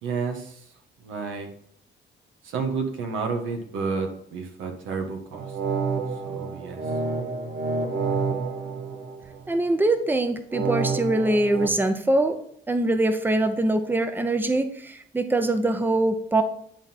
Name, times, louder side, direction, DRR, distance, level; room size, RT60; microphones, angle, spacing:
voice 1, 0.0-0.5 1.0-1.5 2.4-5.5 6.2-6.8, right 4 dB, 90° right, 3 dB, 1.4 m, -30 dB
sound 1, 5.3-9.6 10.5-11.7, right 4 dB, 60° right, 1.3 m, -29 dB
voice 2, 9.5-12.3 12.7-16.4, right 2 dB, 10° right, 8 dB, 0.8 m, -23 dB
10.5 x 3.8 x 4.4 m, 0.68 s
cardioid pair, 90°, 20 cm